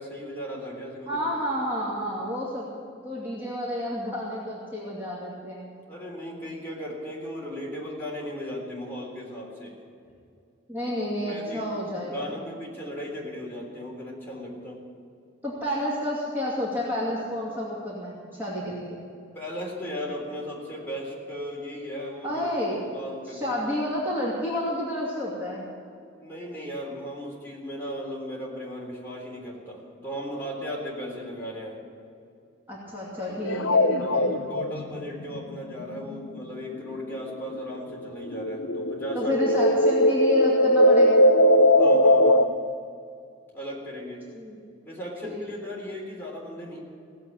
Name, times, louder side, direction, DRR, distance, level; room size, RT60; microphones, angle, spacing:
voice 1, 0.0-1.4 5.9-9.8 11.2-11.7 12.0-14.8 19.3-22.4 22.7-23.4 26.2-31.8 33.3-33.7 34.0-39.3 41.8-42.5 43.5-44.3 44.8-46.8, equal, 10° left, -5 dB, 3.6 m, -36 dB
voice 2, 1.0-2.7 3.0-5.7 10.7-12.3 15.4-19.0 22.2-22.8 23.3-25.6 32.7-34.2 39.1-41.2 44.3-44.6 45.2-45.5, left 1 dB, 10° right, -7 dB, 2.6 m, -30 dB
sound 1, 33.5-37.6 37.9-42.5, equal, 75° left, 0.7 m, -20 dB
17.5 x 7.8 x 9.1 m, 2.5 s
head